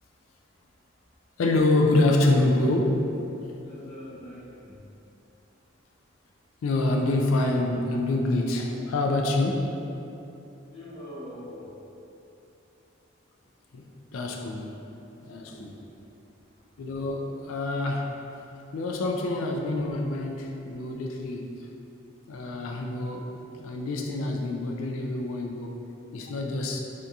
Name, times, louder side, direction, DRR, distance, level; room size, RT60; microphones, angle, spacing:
voice 1, 1.4-3.1 6.6-9.7 13.7-13.9 14.1-14.8 15.2-15.8 16.8-18.1 18.7-21.6 22.3-23.3 23.6-25.7 26.1-26.8, left 2 dB, 80° left, 2 dB, 0.4 m, -26 dB
voice 2, 3.6-4.8 10.7-11.7 15.4-15.8, left 1 dB, 25° left, -14 dB, 1.3 m, -43 dB
3.4 x 2.6 x 2.7 m, 2.9 s
head